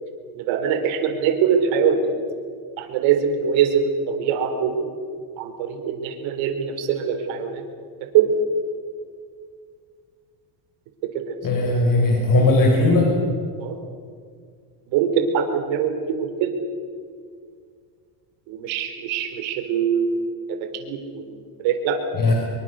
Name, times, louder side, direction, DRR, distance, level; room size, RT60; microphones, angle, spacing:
voice 1, 0.3-2.1 2.8-4.9 5.4-7.6 8.1-8.3 11.3-11.4 11.7-11.8 13.6-13.8 14.9-16.5 18.5-22.0, right 7 dB, 75° right, 6 dB, 4.4 m, -23 dB
voice 2, 11.4-13.1 22.1-22.3, left 2 dB, 45° left, 0 dB, 6.1 m, -18 dB
25.5 x 23.5 x 6.7 m, 2.1 s
cardioid pair, 110°, 47 cm